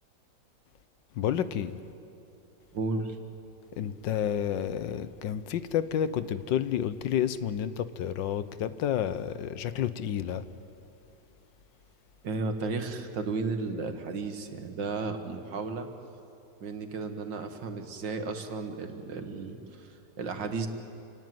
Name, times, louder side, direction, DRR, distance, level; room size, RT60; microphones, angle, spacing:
voice 1, 1.2-1.7 3.8-10.4, left 9 dB, 85° left, 13 dB, 1.6 m, -30 dB
voice 2, 2.7-3.2 12.2-15.9 16.6-20.7, right 3 dB, 90° right, 6 dB, 2.3 m, -34 dB
28.0 x 18.5 x 9.5 m, 2.7 s
omnidirectional pair, 1.9 m